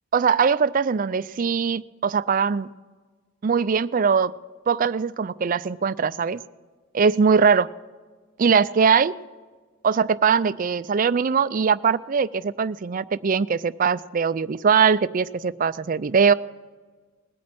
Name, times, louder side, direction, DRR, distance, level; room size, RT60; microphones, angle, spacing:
voice 1, 0.1-2.7 3.4-4.3 4.7-6.4 6.9-7.7 8.4-9.1 9.8-16.3, right 6 dB, 40° right, 16 dB, 0.4 m, -21 dB
20.0 x 8.5 x 7.7 m, 1.4 s
head